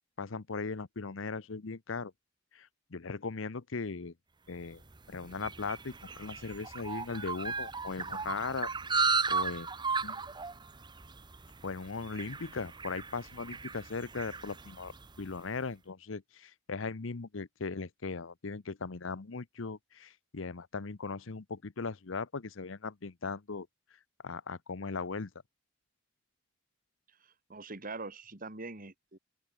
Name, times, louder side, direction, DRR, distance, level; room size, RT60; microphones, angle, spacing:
voice 1, 0.2-2.1 2.5-4.1 4.5-4.8 5.1-8.7 9.3-9.7 10.0-10.2 11.6-23.7 24.2-25.3, left 4 dB, 80° left, 0.8 m, -38 dB
sound 1, 4.7-15.3, right 5 dB, 25° right, 1.0 m, -36 dB
voice 2, 27.1-29.2, right 3 dB, 45° right, 2.7 m, -44 dB
open air
head